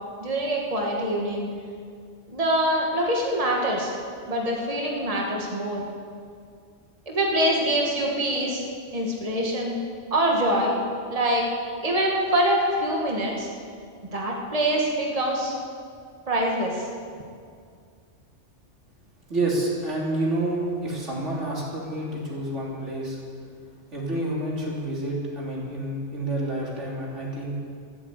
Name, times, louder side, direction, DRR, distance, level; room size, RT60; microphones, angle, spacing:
voice 1, 0.2-1.5 2.3-3.9 4.3-5.8 7.1-8.6 8.9-9.7 10.1-10.8 11.1-11.5 11.8-13.5 14.1-15.5 16.3-16.9, right 1 dB, 30° right, -2 dB, 1.9 m, -24 dB
voice 2, 19.3-23.2 23.9-27.5, right 1 dB, 85° right, -4 dB, 3.7 m, -28 dB
13.5 x 11.0 x 8.3 m, 2.2 s
omnidirectional pair, 1.2 m